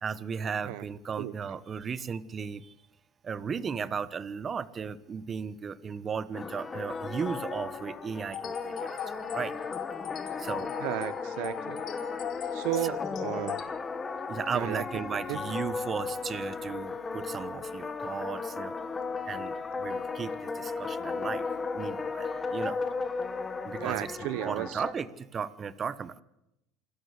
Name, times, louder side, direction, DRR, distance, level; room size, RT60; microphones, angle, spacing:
voice 1, 0.0-2.7 3.2-9.0 9.3-9.5 10.4-10.8 12.8-13.0 14.3-18.7 19.2-21.5 21.7-22.8 23.6-26.2, right 6 dB, 30° right, 1.1 m, -35 dB
sound 1, 6.3-24.9, left 4 dB, 20° left, 1.8 m, -35 dB
sound 2, 8.3-13.6, left 10 dB, 50° left, 2.3 m, -39 dB
voice 2, 10.8-11.8 12.5-13.6 14.5-15.0 15.3-15.4 23.8-24.8, right 17 dB, 75° right, 0.8 m, -34 dB
27.5 x 13.5 x 8.3 m
supercardioid pair, 110°, 0 cm